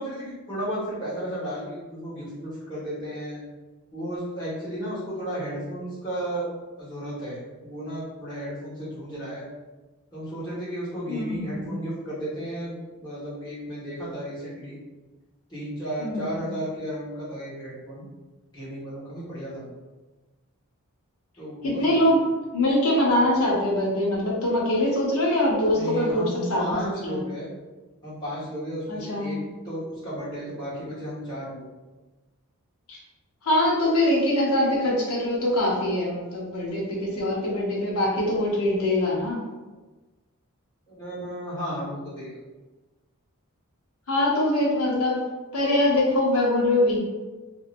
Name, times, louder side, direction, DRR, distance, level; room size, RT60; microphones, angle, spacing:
voice 1, 0.0-3.4 3.9-6.5 6.8-9.4 10.1-14.8 15.5-18.1 18.5-19.6 21.4-22.3 25.7-27.5 28.0-29.4 29.6-31.6 40.9-42.4, equal, 20° left, -11 dB, 1.5 m, -33 dB
voice 2, 11.1-11.7 16.0-16.5 21.6-22.3 22.5-27.3 28.9-29.5 32.9-33.0 33.4-39.5 44.1-45.2 45.5-47.0, left 1 dB, 80° left, -3 dB, 0.8 m, -23 dB
2.8 x 2.6 x 2.5 m, 1.2 s
head